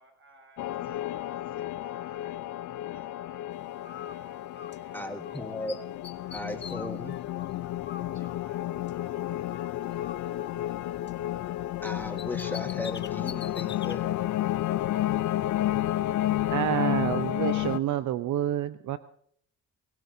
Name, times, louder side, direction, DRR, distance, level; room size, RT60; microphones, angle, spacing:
voice 1, 0.0-2.4 2.9-5.7 8.0-11.0 16.0-16.2, right 2 dB, 40° right, 4 dB, 6.4 m, -58 dB
sound 1, 0.6-17.8, left 14 dB, 70° left, 0.6 m, -31 dB
Bird, 3.8-5.4 5.7-9.1 9.5-11.6 11.9-14.0, left 7 dB, 35° left, 1.0 m, -46 dB
voice 2, 4.9-5.8 6.3-7.1 11.8-14.1, left 1 dB, 5° left, 5 dB, 1.5 m, -36 dB
sound 2, 5.9-15.7, left 8 dB, 55° left, 1.3 m, -54 dB
voice 3, 16.5-19.0, right 11 dB, 75° right, 12 dB, 0.8 m, -28 dB
24.5 x 16.5 x 2.7 m, 0.63 s
cardioid pair, 90°, 30 cm